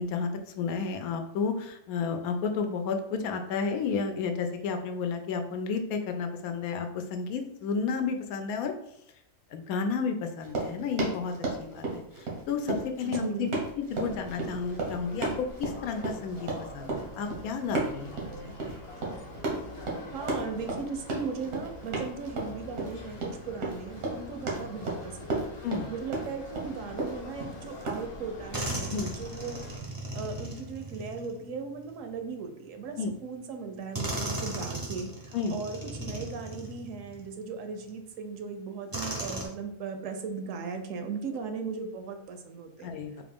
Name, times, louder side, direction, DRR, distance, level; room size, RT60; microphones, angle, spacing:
voice 1, 0.0-8.7 9.5-11.3 11.6-12.0 12.5-13.5 13.8-18.1 18.4-18.5 25.6-25.9 28.9-29.1 33.0-33.1 35.3-35.6 42.8-43.2, left 5 dB, 90° left, 6 dB, 1.1 m, -31 dB
Run, 10.4-28.0, right 3 dB, 90° right, 1.5 m, -34 dB
voice 2, 13.0-13.5 20.1-25.5 25.9-29.8 30.1-43.0, right 5 dB, 70° right, 6 dB, 0.9 m, -38 dB
sound 1, 14.0-29.8, left 1 dB, 55° left, 0.9 m, -45 dB
sound 2, 27.8-27.9 28.5-32.2 33.1-33.2 33.9-37.3 37.9-38.0 38.9-39.5, right 1 dB, 25° right, 0.4 m, -37 dB
4.1 x 2.5 x 3.4 m, 0.79 s
omnidirectional pair, 1.5 m